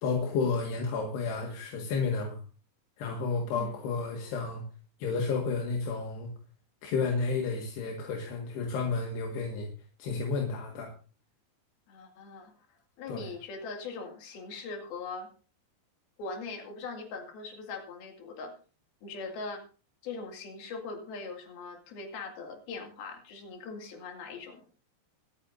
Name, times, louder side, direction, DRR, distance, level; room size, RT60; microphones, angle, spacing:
voice 1, 0.0-2.4 3.0-4.6 5.0-6.3 6.8-9.7 10.0-10.9 13.1-13.3, left 4 dB, 85° left, 0 dB, 3.8 m, -31 dB
voice 2, 11.9-12.5 13.0-15.3 16.2-18.5 19.0-19.6 20.0-24.7, left 4 dB, 65° left, 2 dB, 4.1 m, -41 dB
25.0 x 8.9 x 2.6 m, 0.37 s
omnidirectional pair, 4.8 m